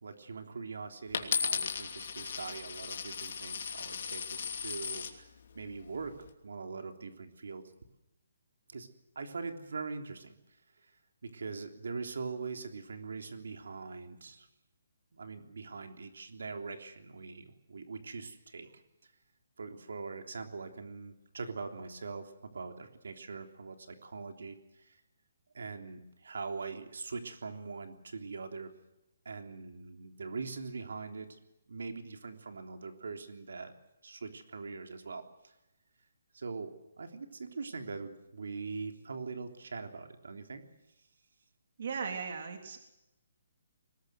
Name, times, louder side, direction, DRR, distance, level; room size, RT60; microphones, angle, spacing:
voice 1, 0.0-5.3 5.5-6.1 6.4-7.6 8.7-8.9 9.1-10.3 11.2-14.5 15.1-18.8 19.6-25.0 25.5-28.7 29.2-31.4 31.7-33.7 34.0-35.2 36.3-40.6, right 4 dB, 80° right, 5 dB, 3.3 m, -42 dB
Coin (dropping), 1.1-5.2 5.9-6.3, left 6 dB, 50° left, 2.9 m, -36 dB
voice 2, 41.8-42.8, right 5 dB, 50° right, 4 dB, 3.4 m, -37 dB
23.0 x 20.0 x 8.0 m, 0.91 s
hypercardioid pair, 170°, 0 cm